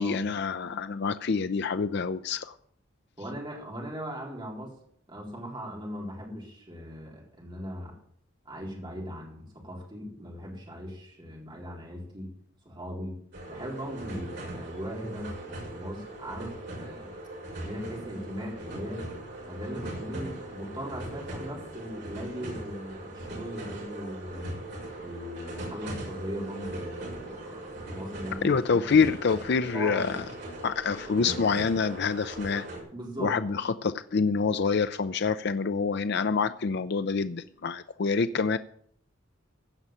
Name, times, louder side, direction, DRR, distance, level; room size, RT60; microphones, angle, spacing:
voice 1, 0.0-2.5 28.4-30.2 30.6-32.7 33.2-38.6, left 5 dB, 55° left, 11 dB, 0.5 m, -26 dB
voice 2, 3.2-4.7 5.1-8.0 8.5-12.3 12.6-13.2 13.5-17.2 17.6-19.1 19.5-24.6 24.9-28.5 28.9-29.1 29.7-30.0 32.9-33.4, equal, 25° right, -2 dB, 4.0 m, -39 dB
sound 1, 13.3-32.8, right 1 dB, 60° right, 6.0 m, -40 dB
16.0 x 5.5 x 8.9 m, 0.63 s
head